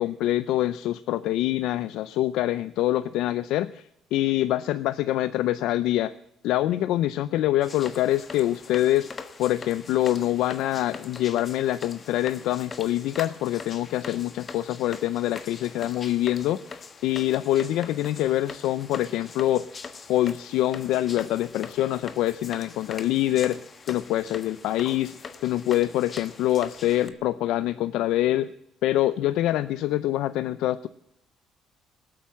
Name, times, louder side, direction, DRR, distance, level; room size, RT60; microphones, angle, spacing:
voice 1, 0.0-6.1 6.4-9.1 9.4-19.7 20.1-25.1 25.4-28.5 28.8-30.9, left 14 dB, 85° left, 13 dB, 0.5 m, -25 dB
sound 1, 7.6-27.1, left 5 dB, 35° left, 1.3 m, -42 dB
19.5 x 8.6 x 7.6 m, 0.79 s
cardioid pair, 115°, 0 cm